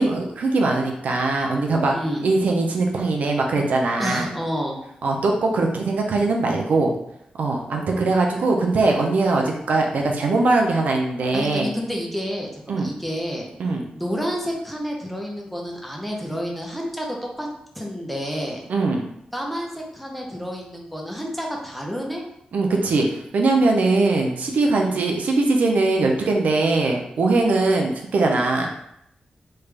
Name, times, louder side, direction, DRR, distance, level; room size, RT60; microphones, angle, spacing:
voice 1, 0.0-1.9 2.2-4.3 5.0-7.0 7.4-11.7 12.7-12.9 13.6-13.8 18.7-19.0 22.5-28.7, right 3 dB, 80° right, 1 dB, 0.5 m, -21 dB
voice 2, 1.9-2.3 4.0-4.8 11.3-13.5 13.9-17.5 17.7-18.6 19.3-22.2 24.7-25.0, equal, ahead, -1 dB, 0.7 m, -29 dB
3.2 x 2.4 x 3.3 m, 0.77 s
wide cardioid pair, 95°, 3 cm